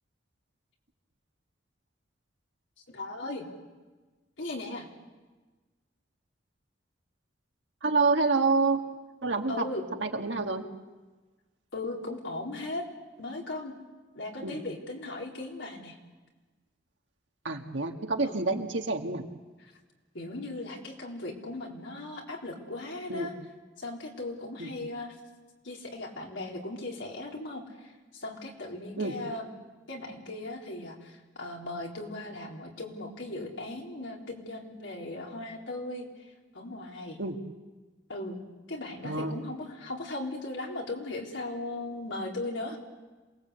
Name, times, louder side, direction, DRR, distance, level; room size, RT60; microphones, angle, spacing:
voice 1, 2.9-3.4 4.4-4.9 9.5-9.9 11.7-12.9 13.2-13.8 14.1-16.0 18.2-18.4 19.6-19.7 20.1-23.3 23.8-25.2 25.6-29.5 29.9-37.2 38.1-38.4 38.7-42.8, left 2 dB, 85° left, 0 dB, 4.0 m, -38 dB
voice 2, 7.8-8.8 9.2-9.7 10.0-10.7 14.4-14.6 17.4-19.2 23.1-23.3 24.6-24.7 29.0-29.2 37.2-37.4 39.0-39.3, right 3 dB, 90° right, 3 dB, 2.0 m, -28 dB
27.5 x 19.5 x 8.2 m, 1.3 s
head